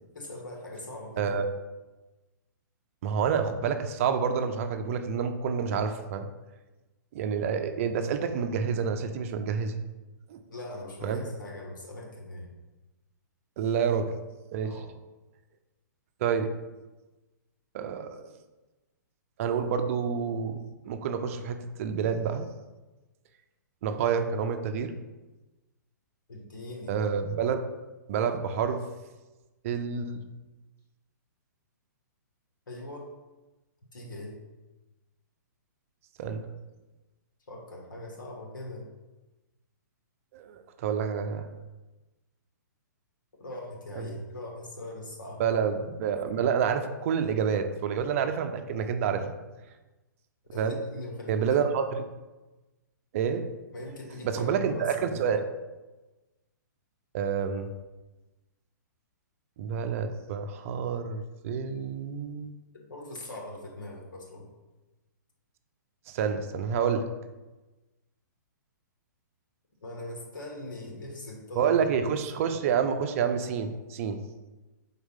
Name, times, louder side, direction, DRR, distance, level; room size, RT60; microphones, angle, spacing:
voice 1, 0.2-1.4 10.5-12.5 14.6-14.9 26.3-27.0 32.7-33.1 33.9-34.4 37.5-38.8 43.4-45.4 50.5-51.6 53.7-55.3 62.9-64.5 69.8-71.7 72.1-72.5, left 1 dB, 90° left, -1 dB, 1.7 m, -41 dB
voice 2, 3.0-6.3 7.1-9.8 10.3-10.4 11.0-11.3 13.6-14.2 14.5-14.7 16.2-16.5 17.7-18.2 19.4-20.6 20.9-22.5 23.8-24.9 26.9-27.6 28.1-28.8 29.6-30.2 36.2-36.5 40.3-41.4 44.0-44.1 45.4-49.2 50.5-50.8 51.3-52.0 53.1-53.5 54.2-55.5 57.1-57.7 59.6-62.5 66.1-67.0 71.6-74.2, right 7 dB, 45° right, 7 dB, 0.6 m, -28 dB
4.7 x 4.0 x 5.5 m, 1.1 s
hypercardioid pair, 145°, 10 cm